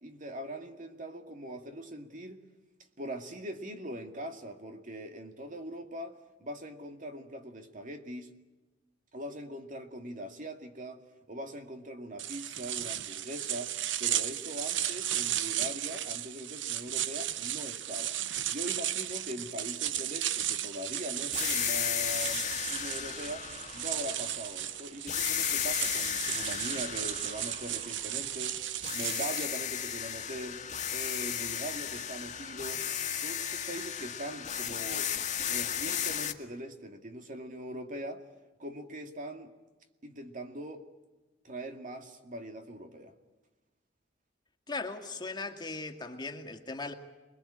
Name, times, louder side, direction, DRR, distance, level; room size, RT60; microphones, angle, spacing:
voice 1, 0.0-2.4 3.0-8.3 9.1-11.0 11.3-13.7 14.0-18.2 18.5-23.5 23.7-28.6 28.8-30.6 30.9-32.8 33.2-35.1 35.5-38.2 38.6-39.5 40.0-40.9 41.4-43.1, right 1 dB, 45° right, 2.3 m, -41 dB
sound 1, 12.2-29.6, right 12 dB, 80° right, 0.8 m, -35 dB
sound 2, 21.3-24.6 25.1-28.4 28.8-36.3, left 9 dB, 40° left, 1.9 m, -34 dB
voice 2, 44.7-46.9, left 3 dB, 25° left, 2.2 m, -38 dB
27.5 x 21.5 x 8.8 m
head